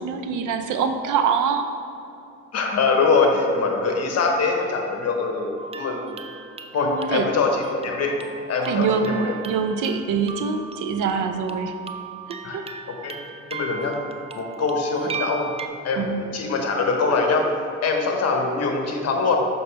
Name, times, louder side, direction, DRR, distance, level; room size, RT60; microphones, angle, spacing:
voice 1, 0.0-1.7 6.8-7.3 8.7-11.7 12.5-12.7 16.0-16.2, right 6 dB, 85° right, 7 dB, 0.6 m, -24 dB
voice 2, 2.5-6.2 6.7-8.1 8.5-9.3 12.4-12.6 12.9-13.2 13.5-13.9 14.3-15.5 15.8-17.5 17.8-19.5, left 4 dB, 55° left, 2 dB, 1.1 m, -23 dB
sound 1, 5.6-15.7, right 5 dB, 20° right, 0.3 m, -37 dB
6.7 x 5.5 x 3.3 m, 2.7 s
cardioid pair, 90°, 30 cm